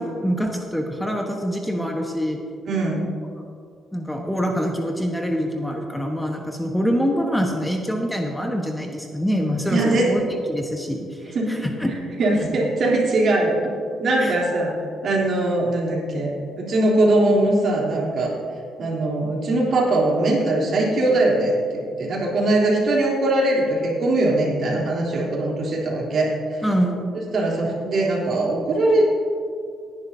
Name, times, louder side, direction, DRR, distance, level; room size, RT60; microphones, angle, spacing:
voice 1, 0.0-2.4 3.9-12.0 14.2-14.3 26.6-27.0, equal, 5° left, 2 dB, 1.2 m, -25 dB
voice 2, 2.7-3.1 9.7-10.1 11.3-11.7 12.2-13.6 14.0-14.7 15.0-16.3 16.6-18.3 18.8-26.7 27.3-29.0, right 2 dB, 60° right, -3 dB, 3.3 m, -21 dB
18.0 x 10.5 x 2.8 m, 2.3 s
cardioid pair, 90°, 0 cm